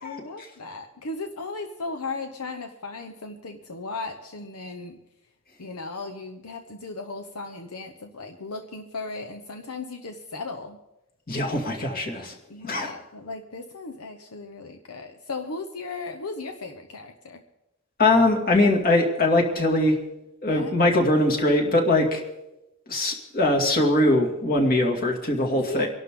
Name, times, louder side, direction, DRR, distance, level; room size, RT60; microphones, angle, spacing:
voice 1, 0.0-5.0 5.6-10.8 12.5-17.4 20.5-20.7 25.6-25.9, left 3 dB, 75° left, 5 dB, 1.0 m, -36 dB
voice 2, 11.3-12.3 12.6-12.9 18.0-20.0 20.4-22.2 22.9-25.9, left 1 dB, 40° left, 1 dB, 2.5 m, -21 dB
24.5 x 12.0 x 3.8 m, 0.94 s
head